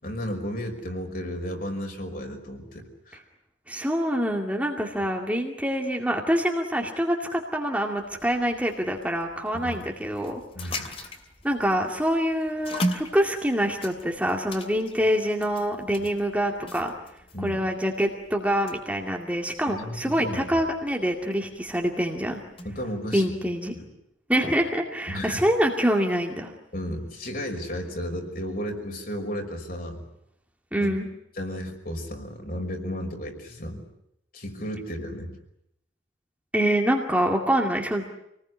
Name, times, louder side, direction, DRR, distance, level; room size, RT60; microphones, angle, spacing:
voice 1, 0.0-3.2 9.5-9.8 10.6-10.9 16.0-16.1 17.3-17.6 19.7-20.6 22.6-23.3 23.8-23.9 25.1-25.5 26.7-30.0 30.8-31.0 31.4-33.8 34.3-35.3, equal, 45° left, 3 dB, 5.6 m, -33 dB
voice 2, 3.7-11.0 11.4-16.9 17.4-22.4 23.1-23.7 24.3-26.5 30.7-31.1 36.5-38.0, equal, 5° right, 1 dB, 2.3 m, -25 dB
sound 1, 8.0-22.8, equal, 30° left, 2.7 m, -39 dB
27.5 x 20.0 x 9.7 m, 0.79 s
head